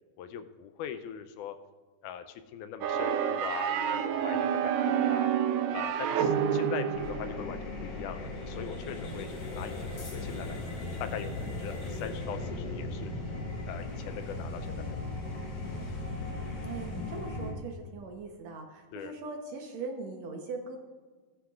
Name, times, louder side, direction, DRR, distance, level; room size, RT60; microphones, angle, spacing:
voice 1, 0.2-1.6 2.0-5.3 5.7-9.8 10.1-13.1 13.7-15.2 18.9-19.1, left 9 dB, 80° left, 9 dB, 2.0 m, -41 dB
sound 1, 2.8-7.6, right 8 dB, 85° right, 2.3 m, -28 dB
voice 2, 6.4-7.4 16.6-20.8, right 3 dB, 65° right, 3 dB, 2.0 m, -41 dB
sound 2, 6.9-17.5, left 2 dB, 50° left, 2.8 m, -37 dB
16.5 x 9.4 x 2.4 m, 1.4 s
omnidirectional pair, 3.7 m